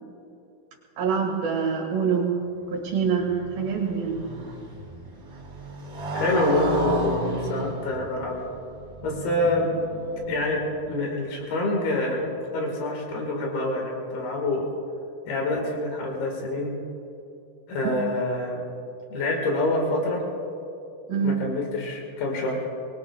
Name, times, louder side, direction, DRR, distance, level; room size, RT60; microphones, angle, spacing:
voice 1, 1.0-2.3 2.7-4.3 17.8-18.0 21.1-21.3, right 6 dB, 70° right, 0 dB, 3.6 m, -25 dB
Motorcycle, 2.8-10.9, right 1 dB, 30° right, 1.0 m, -33 dB
voice 2, 6.1-8.4 9.0-9.7 10.3-10.6 10.9-14.7 15.3-16.8 17.7-18.6 19.1-20.2 21.2-22.6, left 2 dB, 80° left, 0 dB, 3.8 m, -26 dB
24.0 x 21.0 x 2.4 m, 2.8 s
omnidirectional pair, 4.4 m